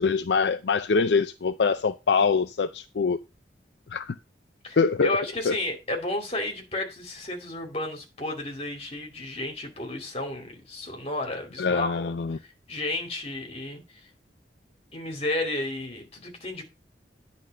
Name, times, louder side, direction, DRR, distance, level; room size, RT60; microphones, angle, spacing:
voice 1, 0.0-3.2 3.9-4.2 4.8-5.2 5.4-5.6 11.6-12.4, left 5 dB, 70° left, 0.5 m, -24 dB
voice 2, 5.0-12.0 12.7-14.0 14.9-16.6, left 2 dB, 35° left, 2.5 m, -32 dB
10.0 x 4.1 x 6.5 m
head